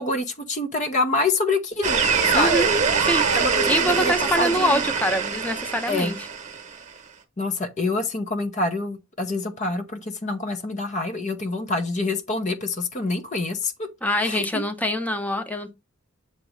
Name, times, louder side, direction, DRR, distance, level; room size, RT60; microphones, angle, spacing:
voice 1, 0.0-2.0 2.3-2.7 3.3-4.8 5.9-6.1 7.4-13.9 14.2-14.6, left 2 dB, 35° left, 0.8 m, -26 dB
sound 1, 1.8-6.8, right 5 dB, 35° right, 1.0 m, -23 dB
voice 2, 2.3-2.7 3.0-3.3 3.7-6.2 14.0-15.7, equal, 10° left, 0.8 m, -24 dB
7.4 x 3.0 x 5.0 m
head